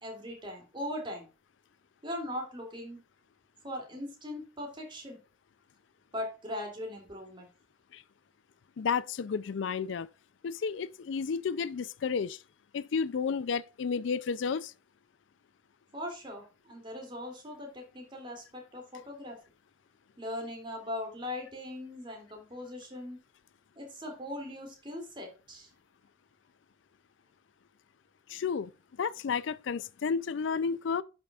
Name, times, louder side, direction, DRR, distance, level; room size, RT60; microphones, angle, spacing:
voice 1, 0.0-1.3 2.0-3.0 3.6-5.2 6.1-7.5 15.9-19.4 20.2-23.2 23.8-25.7, left 1 dB, 25° right, 2.7 m, -40 dB
voice 2, 8.8-10.1 10.4-12.4 12.7-14.7 28.3-28.7 29.0-31.0, left 6 dB, 65° left, 0.4 m, -32 dB
11.0 x 5.8 x 2.4 m
head